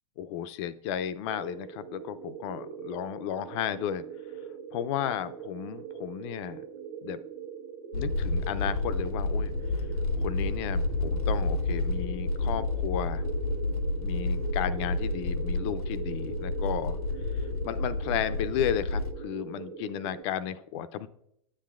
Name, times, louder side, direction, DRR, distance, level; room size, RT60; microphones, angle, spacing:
voice 1, 0.2-4.0 4.7-6.6 7.0-7.2 7.9-9.5 10.2-13.3 14.0-17.0 17.6-21.1, left 10 dB, 50° left, 13 dB, 0.5 m, -33 dB
sound 1, 1.2-20.2, right 6 dB, 55° right, 1.1 m, -42 dB
sound 2, 7.9-19.1, left 2 dB, 90° left, 0.7 m, -30 dB
9.8 x 7.6 x 2.4 m, 0.74 s
hypercardioid pair, 110°, 19 cm